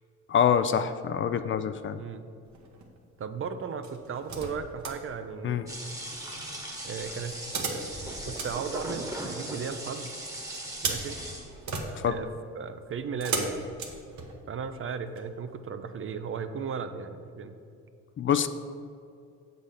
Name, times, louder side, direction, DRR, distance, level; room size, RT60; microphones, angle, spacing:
voice 1, 0.3-2.0 5.4-5.7 12.0-12.2 18.2-18.5, left 8 dB, 40° left, 11 dB, 0.4 m, -25 dB
sound 1, 2.4-3.0 3.8-5.0 7.3-9.5 10.5-14.7 15.2-15.3, right 4 dB, 65° right, 1.2 m, -36 dB
voice 2, 3.2-5.6 6.8-8.0 8.3-10.1 10.8-11.2 12.1-13.8 14.5-17.6, right 6 dB, 45° right, 9 dB, 0.5 m, -36 dB
sound 2, 5.7-11.8, right 1 dB, 10° right, 1.2 m, -38 dB
7.1 x 4.0 x 6.5 m, 2.4 s
cardioid pair, 90°, 30 cm